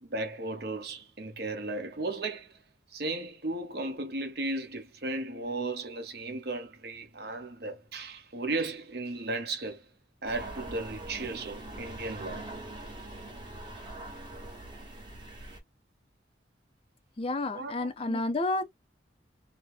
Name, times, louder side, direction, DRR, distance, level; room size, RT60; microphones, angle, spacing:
voice 1, 0.0-2.6 2.9-9.9 10.2-12.4 17.5-18.2, right 2 dB, 60° right, 0.8 m, -35 dB
sound 1, 10.2-15.6, right 1 dB, 25° right, 0.8 m, -43 dB
voice 2, 17.2-18.7, left 2 dB, 30° left, 0.4 m, -30 dB
2.7 x 2.1 x 3.1 m
head